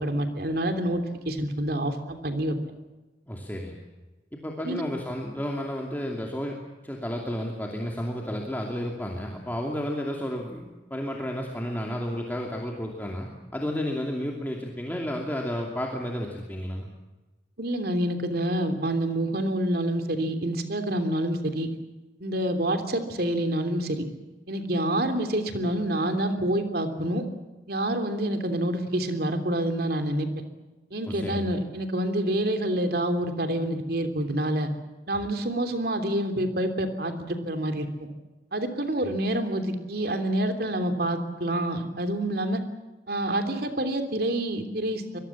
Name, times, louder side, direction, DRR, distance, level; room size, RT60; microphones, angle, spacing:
voice 1, 0.0-2.5 4.6-4.8 17.6-21.7 22.2-24.0 24.5-27.3 27.7-30.3 30.9-34.7 35.1-38.1 38.5-42.6 43.1-45.2, right 1 dB, 60° right, 7 dB, 3.2 m, -27 dB
voice 2, 3.3-3.8 4.4-6.6 6.8-16.9 31.1-31.5, equal, 10° left, 0 dB, 2.6 m, -32 dB
24.5 x 21.5 x 7.4 m, 1.2 s
head